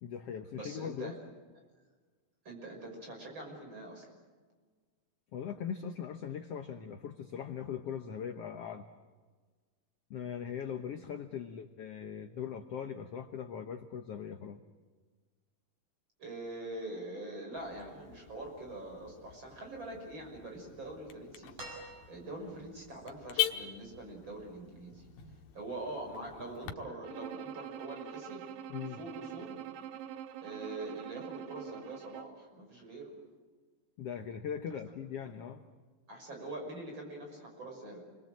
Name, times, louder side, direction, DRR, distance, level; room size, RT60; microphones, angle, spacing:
voice 1, 0.0-1.2 5.3-8.9 10.1-14.6 28.7-29.0 34.0-35.6, left 8 dB, 65° left, 7 dB, 1.6 m, -40 dB
voice 2, 0.5-1.1 2.4-4.1 16.2-21.5 22.1-28.5 28.8-29.6 30.4-33.1 36.1-38.0, right 2 dB, 35° right, 1 dB, 6.6 m, -44 dB
Car / Alarm, 17.6-26.7, left 13 dB, 85° left, 2.8 m, -42 dB
sound 1, 21.6-22.6 24.1-24.2, right 1 dB, 55° right, 8.0 m, -47 dB
Bowed string instrument, 27.0-32.5, right 10 dB, 90° right, 2.7 m, -45 dB
29.0 x 23.0 x 7.7 m, 1.4 s
omnidirectional pair, 3.9 m